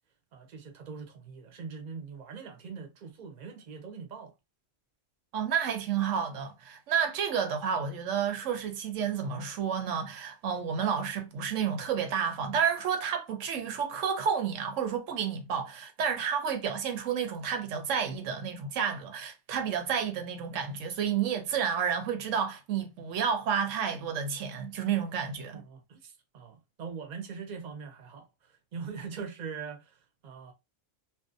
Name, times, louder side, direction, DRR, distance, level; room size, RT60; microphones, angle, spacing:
voice 1, 0.3-4.3 25.5-30.5, right 5 dB, 45° right, 0.6 m, -42 dB
voice 2, 5.3-25.6, right 7 dB, 80° right, 1.0 m, -30 dB
2.6 x 2.0 x 2.5 m
omnidirectional pair, 1.3 m